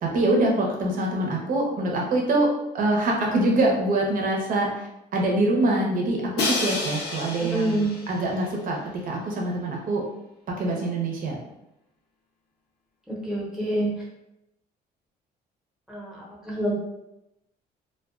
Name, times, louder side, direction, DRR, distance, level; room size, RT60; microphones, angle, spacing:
voice 1, 0.0-10.0 10.5-11.4, right 2 dB, 55° right, -1 dB, 0.7 m, -24 dB
Crash cymbal, 6.4-8.4, left 2 dB, 75° left, 0.7 m, -29 dB
voice 2, 7.5-7.9 13.1-13.9 15.9-16.7, right 1 dB, 5° right, -6 dB, 0.9 m, -27 dB
2.4 x 2.3 x 2.4 m, 0.87 s
cardioid pair, 110°, 17 cm